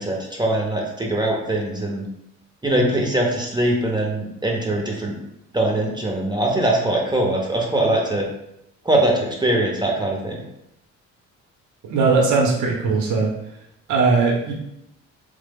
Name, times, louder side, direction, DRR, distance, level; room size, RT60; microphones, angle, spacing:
voice 1, 0.0-2.0 2.6-5.2 5.5-8.3 8.8-10.4, right 1 dB, 15° right, -1 dB, 0.6 m, -22 dB
voice 2, 11.8-13.3 13.9-14.5, right 4 dB, 75° right, 0 dB, 0.7 m, -19 dB
3.1 x 2.0 x 3.4 m, 0.80 s
cardioid pair, 90°, 30 cm